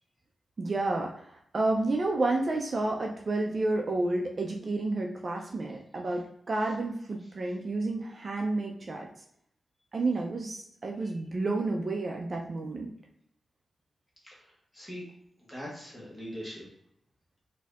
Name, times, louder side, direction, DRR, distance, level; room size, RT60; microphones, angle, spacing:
voice 1, 0.6-1.1 1.5-6.2 6.5-9.1 9.9-12.9, right 2 dB, 45° right, 1 dB, 0.4 m, -30 dB
voice 2, 14.2-15.1 15.4-16.7, equal, 10° left, -4 dB, 1.2 m, -42 dB
4.1 x 2.7 x 2.4 m, 0.72 s
wide cardioid pair, 115°, 0 cm